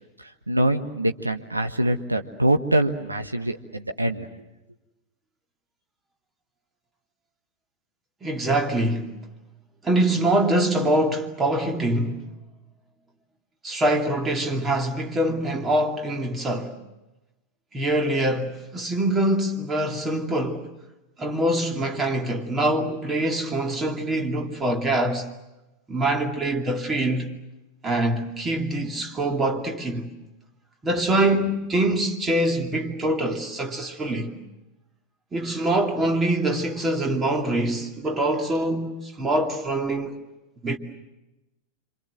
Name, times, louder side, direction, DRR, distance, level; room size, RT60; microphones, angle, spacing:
voice 1, 0.5-4.3, right 1 dB, 85° right, 1.5 m, -24 dB
voice 2, 8.2-9.1 9.8-12.2 13.6-16.8 17.7-20.7 21.2-25.2 25.9-27.3 27.8-30.1 30.8-34.3 35.3-40.2 40.6-40.8, right 1 dB, 20° right, 2.7 m, -24 dB
27.5 x 25.5 x 7.9 m
figure-of-eight pair, 90°, 0 cm